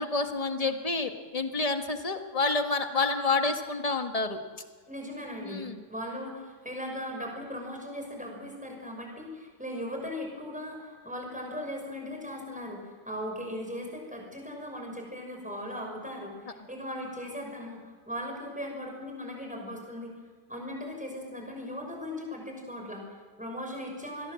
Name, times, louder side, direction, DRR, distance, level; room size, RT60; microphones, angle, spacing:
voice 1, 0.0-4.4 5.4-5.8, left 3 dB, 20° left, 6 dB, 1.5 m, -29 dB
voice 2, 4.9-20.1 20.5-24.3, left 1 dB, 5° right, 1 dB, 6.1 m, -38 dB
27.0 x 21.0 x 7.7 m, 1.5 s
omnidirectional pair, 2.0 m